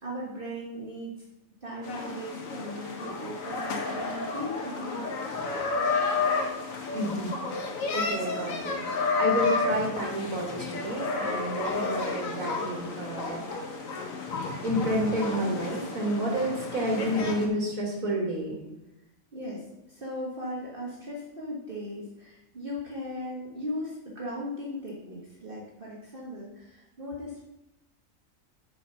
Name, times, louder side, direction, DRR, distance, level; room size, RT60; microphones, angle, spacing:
voice 1, 0.0-1.1 1.6-5.0 19.3-27.4, equal, 40° right, -4 dB, 1.6 m, -38 dB
sound 1, 1.8-17.5, left 4 dB, 80° left, 1.6 m, -31 dB
voice 2, 6.9-7.3 7.9-13.4 13.8-13.9 14.6-18.6, right 1 dB, 85° right, 0 dB, 2.3 m, -30 dB
8.6 x 5.3 x 5.5 m, 0.94 s
omnidirectional pair, 1.4 m